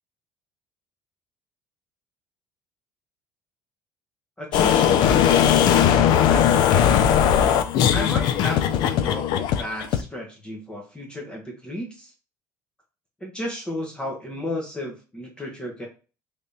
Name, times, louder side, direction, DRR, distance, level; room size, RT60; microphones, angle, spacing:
voice 1, 4.4-5.9 7.9-9.2 9.6-12.1 13.2-15.9, left 1 dB, 10° left, 0 dB, 0.9 m, -33 dB
sound 1, 4.5-10.0, left 9 dB, 70° left, 0.5 m, -18 dB
3.4 x 3.3 x 2.6 m, 0.34 s
cardioid pair, 125°, 8 cm